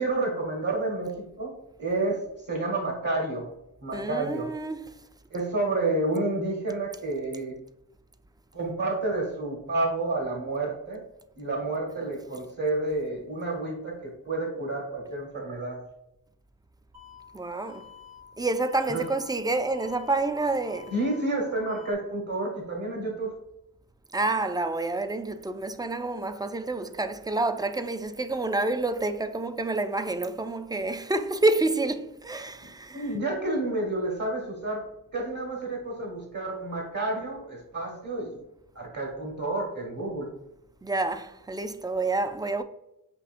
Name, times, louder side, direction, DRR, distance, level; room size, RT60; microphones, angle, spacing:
voice 1, 0.0-1.5 1.8-2.2 2.5-3.5 3.8-4.5 5.3-7.6 8.5-11.0 11.4-15.8 18.9-19.0 20.9-23.3 32.9-34.8 35.1-38.4 38.7-40.3, right 2 dB, 55° right, 1.1 m, -30 dB
voice 2, 3.9-4.8 17.3-17.8 18.4-20.9 24.1-33.1 40.8-42.6, right 2 dB, 10° right, 0.3 m, -28 dB
sound 1, 16.9-21.9, left 9 dB, 80° right, 1.2 m, -50 dB
6.9 x 2.8 x 2.5 m
wide cardioid pair, 50°, 38 cm